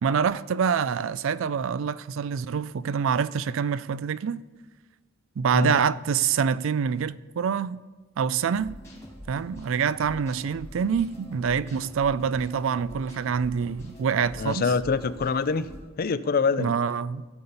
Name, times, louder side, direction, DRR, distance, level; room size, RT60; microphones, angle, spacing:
voice 1, 0.0-4.4 5.4-7.8 8.2-8.8 9.3-14.7 16.6-17.2, right 6 dB, 65° right, 0.4 m, -26 dB
sound 1, 8.5-15.8, equal, 15° left, 4.6 m, -44 dB
voice 2, 14.4-15.7 16.0-16.8, left 4 dB, 45° left, 0.4 m, -25 dB
16.5 x 6.9 x 5.6 m
head